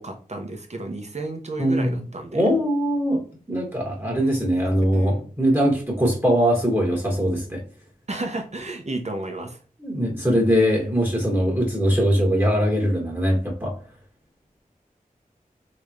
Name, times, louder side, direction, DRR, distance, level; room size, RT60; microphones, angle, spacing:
voice 1, 0.0-2.5 4.2-4.6 4.9-5.2 8.1-9.6, right 2 dB, 50° right, 4 dB, 0.9 m, -32 dB
voice 2, 1.6-2.0 2.3-3.2 3.5-7.6 9.8-13.7, equal, 15° right, -2 dB, 1.4 m, -21 dB
3.2 x 3.0 x 2.5 m, 0.40 s
wide cardioid pair, 55°, 15 cm